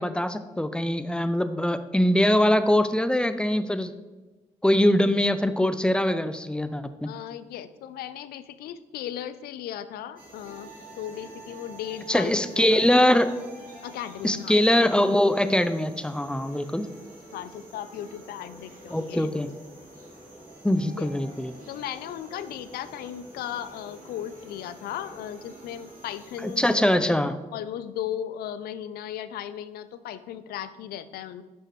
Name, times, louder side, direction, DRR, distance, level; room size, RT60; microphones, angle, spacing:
voice 1, 0.0-3.9 4.6-7.1 12.1-13.3 14.2-16.9 18.9-19.5 20.6-21.5 26.4-27.4, left 1 dB, 5° left, 11 dB, 0.5 m, -22 dB
voice 2, 7.0-12.8 13.8-14.6 17.3-19.3 21.0-21.1 21.7-26.8 27.5-31.4, left 10 dB, 75° left, 13 dB, 0.4 m, -36 dB
sound 1, 10.2-26.8, right 2 dB, 60° right, 2.0 m, -47 dB
6.4 x 6.1 x 3.1 m, 1.2 s
hypercardioid pair, 40°, 16 cm